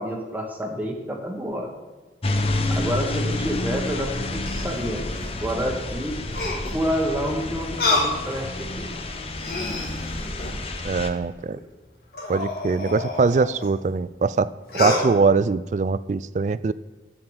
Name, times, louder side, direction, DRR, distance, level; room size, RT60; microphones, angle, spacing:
voice 1, 0.0-1.7 2.7-5.0 5.4-6.1 6.7-8.9, equal, 10° right, 1 dB, 1.2 m, -28 dB
sound 1, 2.2-11.1, left 2 dB, 35° left, 0.8 m, -29 dB
sound 2, 4.0-5.3 6.3-6.9 7.8-8.2 8.8-8.9 9.3-10.7 12.1-13.7 14.7-15.1, left 2 dB, 60° left, 2.2 m, -28 dB
voice 2, 10.8-11.6 12.3-16.7, right 4 dB, 45° right, 17 dB, 0.3 m, -22 dB
7.8 x 7.5 x 6.3 m, 1.2 s
head